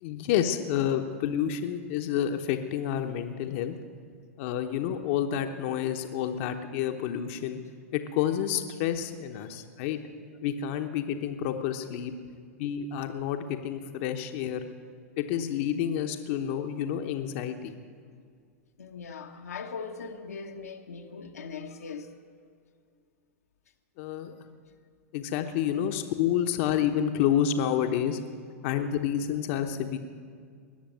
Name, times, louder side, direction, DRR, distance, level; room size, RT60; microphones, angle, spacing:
voice 1, 0.0-3.8 4.4-7.6 7.9-10.0 10.4-12.1 12.6-14.6 15.2-17.7 24.0-24.3 25.1-28.2 28.6-30.0, left 9 dB, 55° left, 1.0 m, -29 dB
voice 2, 18.8-22.1, left 5 dB, 80° left, 1.1 m, -40 dB
20.0 x 6.9 x 9.1 m
hypercardioid pair, 100°, 8 cm